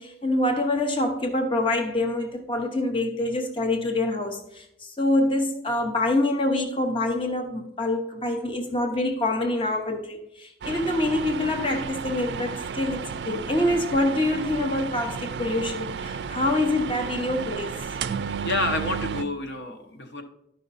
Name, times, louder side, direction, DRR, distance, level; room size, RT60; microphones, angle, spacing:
voice 1, 0.0-17.8, left 1 dB, 30° left, 0.8 m, -26 dB
sound 1, 10.6-19.2, right 6 dB, 70° right, 0.4 m, -33 dB
voice 2, 18.4-20.2, left 2 dB, 80° left, 1.1 m, -28 dB
11.5 x 5.4 x 4.1 m
head